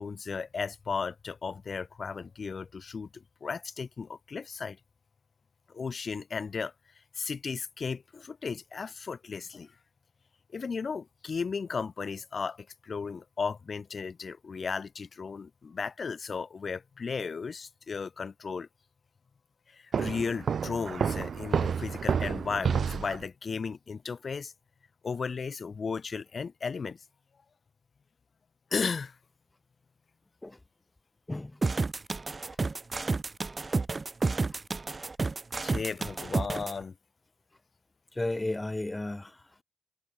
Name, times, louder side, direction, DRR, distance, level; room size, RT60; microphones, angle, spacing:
voice 1, 0.0-4.8 5.7-6.7 7.1-9.8 10.5-18.7 19.7-24.5 25.0-27.0 28.7-29.2 35.6-37.0, left 5 dB, 55° left, 5.5 m, -35 dB
Walk footsteps, 19.9-23.2, right 7 dB, 80° right, 1.2 m, -29 dB
voice 2, 31.3-31.6 38.1-39.6, left 2 dB, 20° left, 4.9 m, -34 dB
sound 1, 31.6-36.7, right 3 dB, 35° right, 0.6 m, -30 dB
wide cardioid pair, 90°, 0 cm